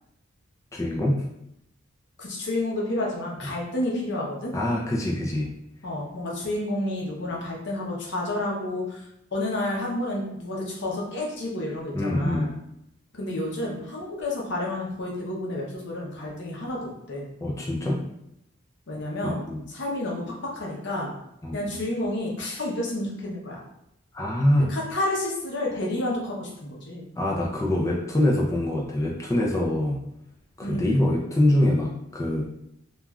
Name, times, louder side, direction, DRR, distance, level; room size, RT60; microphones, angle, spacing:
voice 1, 0.7-1.2 4.5-5.5 11.9-12.5 17.4-18.0 19.2-19.6 21.4-21.8 24.1-24.7 27.2-30.0 30.6-32.4, left 1 dB, 15° left, -2 dB, 0.4 m, -24 dB
voice 2, 2.2-4.5 5.8-9.0 9.3-12.5 13.1-17.3 18.9-19.4 19.7-20.2 20.5-21.1 21.5-23.6 24.7-27.1 30.6-31.0, left 1 dB, 60° left, -2 dB, 0.7 m, -30 dB
3.0 x 2.4 x 2.3 m, 0.79 s
head